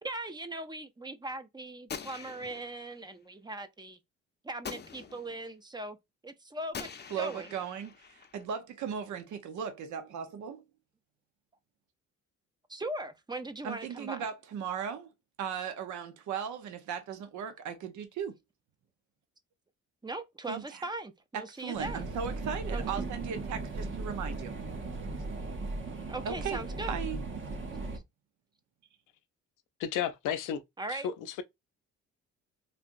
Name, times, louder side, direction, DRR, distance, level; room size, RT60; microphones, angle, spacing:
voice 1, 0.0-4.0 4.4-6.0 6.2-6.9 7.2-7.5 12.7-14.3 20.0-22.0 22.7-22.8 26.1-27.0 30.8-31.1, right 2 dB, 15° right, 0.5 m, -39 dB
Gunshot gunfire, 1.9-3.0 4.6-5.5 6.7-8.5, left 6 dB, 35° left, 0.6 m, -44 dB
voice 2, 7.1-10.6 13.6-15.1 15.4-18.3 20.5-20.9 21.3-24.5 26.2-26.6 26.9-27.2, right 7 dB, 75° right, 0.8 m, -37 dB
sound 1, 21.7-28.0, right 3 dB, 40° right, 0.9 m, -37 dB
voice 3, 29.8-30.6 30.9-31.4, left 9 dB, 85° left, 0.6 m, -33 dB
3.3 x 2.8 x 2.5 m
cardioid pair, 90°, 30 cm